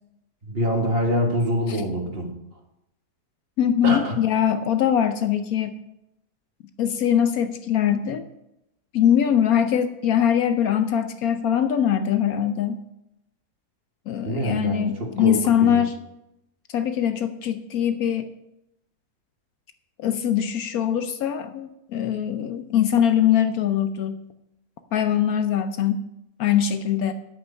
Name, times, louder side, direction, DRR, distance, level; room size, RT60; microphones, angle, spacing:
voice 1, 0.5-2.3 3.8-4.2 14.2-15.8, equal, 35° right, 2 dB, 1.7 m, -25 dB
voice 2, 3.6-5.7 6.8-8.3 8.9-12.8 14.1-16.0 16.7-18.3 20.0-24.2 24.9-26.0 26.4-27.1, left 9 dB, 70° left, 9 dB, 1.1 m, -22 dB
9.3 x 8.1 x 5.5 m, 0.85 s
omnidirectional pair, 1.7 m